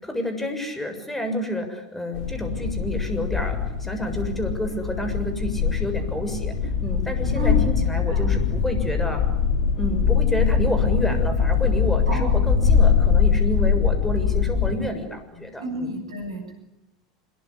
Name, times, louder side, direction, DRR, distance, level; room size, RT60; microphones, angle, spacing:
voice 1, 0.0-6.5 6.8-9.2 9.8-15.9, equal, 10° left, 7 dB, 7.0 m, -29 dB
sound 1, 2.1-14.7, left 6 dB, 55° left, 4.1 m, -22 dB
voice 2, 7.3-8.3 12.1-12.4 15.6-16.6, left 2 dB, 75° right, 5 dB, 7.3 m, -30 dB
26.0 x 22.5 x 9.9 m, 0.88 s
figure-of-eight pair, 80°, 3 cm